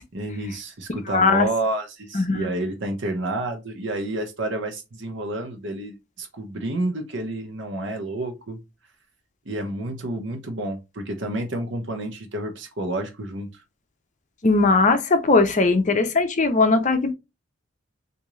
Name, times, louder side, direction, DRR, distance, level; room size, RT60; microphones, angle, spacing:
voice 1, 0.1-8.6 9.5-13.6, right 2 dB, 65° right, 0.9 m, -29 dB
voice 2, 1.1-1.5 2.1-2.5 14.4-17.1, left 3 dB, 40° left, 0.6 m, -19 dB
3.6 x 2.7 x 3.0 m
head